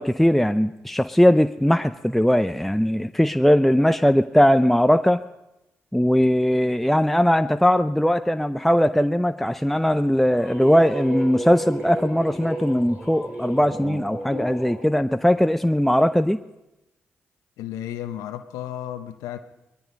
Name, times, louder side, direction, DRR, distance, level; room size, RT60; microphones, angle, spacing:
voice 1, 0.0-5.2 5.9-16.4, equal, 5° left, 0.5 m, -19 dB
sound 1, 9.9-14.8, right 1 dB, 30° right, 7.8 m, -33 dB
voice 2, 17.6-19.4, left 11 dB, 90° left, 0.8 m, -33 dB
19.5 x 14.0 x 5.3 m
supercardioid pair, 55°, 5 cm